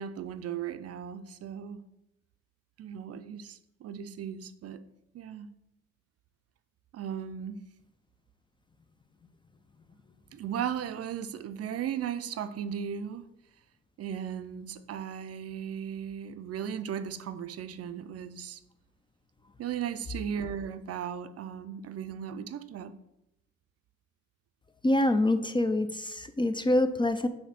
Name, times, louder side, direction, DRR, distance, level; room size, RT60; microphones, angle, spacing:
voice 1, 0.0-1.8 2.8-4.8 5.1-5.5 6.9-7.6 10.3-13.3 14.0-18.6 19.6-22.9, right 8 dB, 55° right, 0.5 m, -36 dB
voice 2, 24.8-27.3, left 1 dB, 15° left, 0.4 m, -25 dB
6.6 x 2.8 x 5.7 m
cardioid pair, 90°, 30 cm